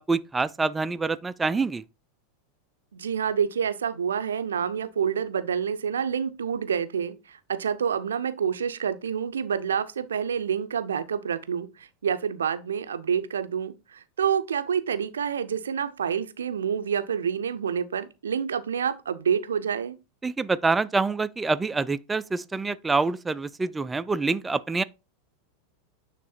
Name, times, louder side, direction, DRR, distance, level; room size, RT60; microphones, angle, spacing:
voice 1, 0.0-1.8 20.2-24.8, right 3 dB, 15° right, 0.4 m, -26 dB
voice 2, 2.9-20.0, right 7 dB, 75° right, 0.6 m, -28 dB
9.5 x 3.3 x 4.2 m
figure-of-eight pair, 85°, 0 cm